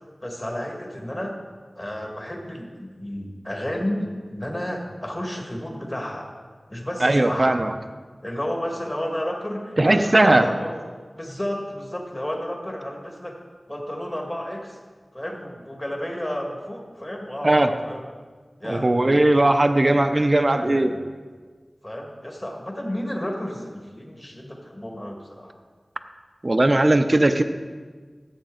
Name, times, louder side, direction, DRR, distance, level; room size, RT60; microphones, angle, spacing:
voice 1, 0.2-1.4 1.8-6.3 6.7-7.6 8.2-10.8 11.1-13.4 13.7-14.8 15.1-18.1 18.6-19.2 19.6-20.3 20.6-21.0 21.8-25.5, equal, 25° left, 1 dB, 1.8 m, -32 dB
voice 2, 7.0-7.7 9.8-10.5 17.4-17.7 18.6-20.9 26.4-27.4, right 1 dB, 40° right, 8 dB, 0.6 m, -18 dB
14.5 x 8.2 x 3.8 m, 1.5 s
wide cardioid pair, 65°, 0 cm